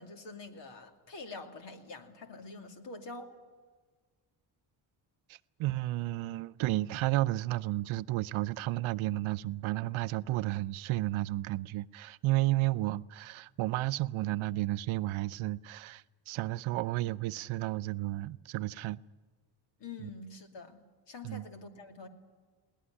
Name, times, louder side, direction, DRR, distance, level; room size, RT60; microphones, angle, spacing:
voice 1, 0.0-3.3 19.8-22.1, left 3 dB, 60° left, 2.7 m, -46 dB
voice 2, 5.3-19.0 20.0-20.1 21.2-21.5, right 17 dB, 80° right, 0.6 m, -32 dB
21.0 x 18.5 x 10.0 m
cardioid pair, 110°, 48 cm